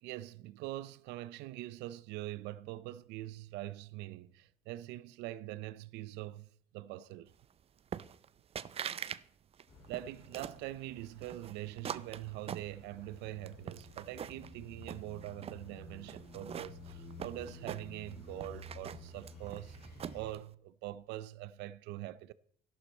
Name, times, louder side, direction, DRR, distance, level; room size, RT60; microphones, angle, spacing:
voice 1, 0.0-7.3 9.9-22.3, right 15 dB, 90° right, 0.5 m, -44 dB
sound 1, 7.9-8.3 8.6-9.2 9.5-10.6 11.2-13.1 13.5-14.5 14.8-15.6 16.1-18.1 18.4-20.4, right 8 dB, 35° right, 0.5 m, -43 dB
sound 2, 9.7-20.3, left 1 dB, 70° left, 5.6 m, -52 dB
12.0 x 11.5 x 4.2 m
cardioid pair, 110°, 17 cm